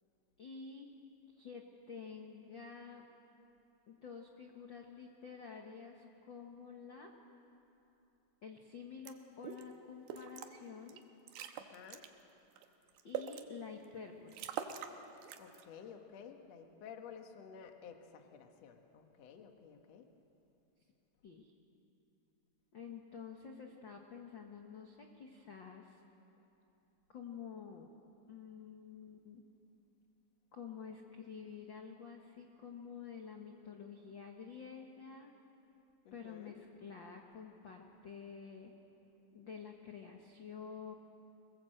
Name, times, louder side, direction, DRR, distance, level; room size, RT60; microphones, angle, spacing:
voice 1, 0.4-0.9 1.3-3.0 3.9-7.1 8.4-11.0 13.0-14.5 21.2-21.5 22.7-26.0 27.1-27.9 28.3-29.4 30.5-35.3 36.1-38.7 39.3-40.9, left 6 dB, 90° left, 2 dB, 1.0 m, -49 dB
sound 1, 9.1-9.2 9.4-9.7 10.1-10.5 10.9-11.0 11.3-12.1 12.6-13.4 13.9-14.0 14.3-15.0 15.2-15.6, right 9 dB, 80° right, 2.9 m, -43 dB
voice 2, 11.6-12.0 15.4-20.1 36.1-36.6, left 7 dB, 55° left, 5 dB, 2.1 m, -53 dB
24.0 x 21.0 x 7.8 m, 2.9 s
omnidirectional pair, 4.4 m